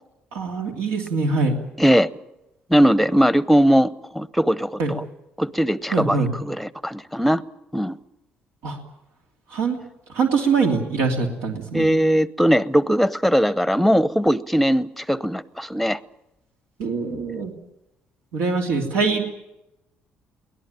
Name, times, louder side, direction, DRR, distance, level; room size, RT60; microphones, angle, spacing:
voice 1, 0.3-1.5 4.8-4.9 5.9-6.3 8.6-8.8 9.5-9.8 10.1-11.9 16.8-17.5 18.3-19.2, right 4 dB, 90° right, 2.8 m, -23 dB
voice 2, 1.8-2.1 2.7-5.0 5.4-7.4 7.7-8.0 11.7-16.0, equal, ahead, 0.8 m, -20 dB
23.0 x 18.0 x 9.0 m
cardioid pair, 105°, 4 cm